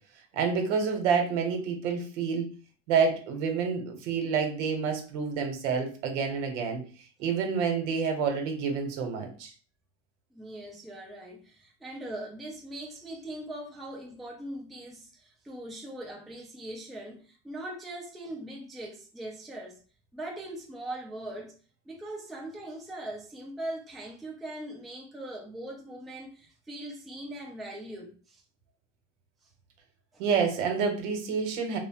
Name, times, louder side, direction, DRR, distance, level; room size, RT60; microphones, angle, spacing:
voice 1, 0.3-2.5 2.9-6.8 7.2-9.5 30.2-31.8, right 6 dB, 85° right, 0.9 m, -28 dB
voice 2, 10.3-19.8 20.1-21.5 21.8-28.4 29.4-29.5 30.1-30.2, right 1 dB, ahead, 0.3 m, -41 dB
2.7 x 2.0 x 2.7 m
supercardioid pair, 130°, 35 cm